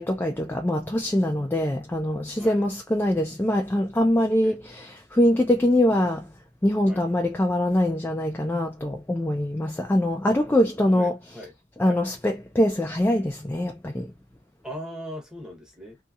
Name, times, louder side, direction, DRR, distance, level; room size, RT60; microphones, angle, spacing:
voice 1, 0.0-6.2 6.6-11.2 11.8-14.1, left 1 dB, 10° left, 0.3 m, -23 dB
voice 2, 10.8-11.5 11.8-12.0 14.6-16.0, equal, 5° right, 0.9 m, -39 dB
2.7 x 2.7 x 2.3 m
head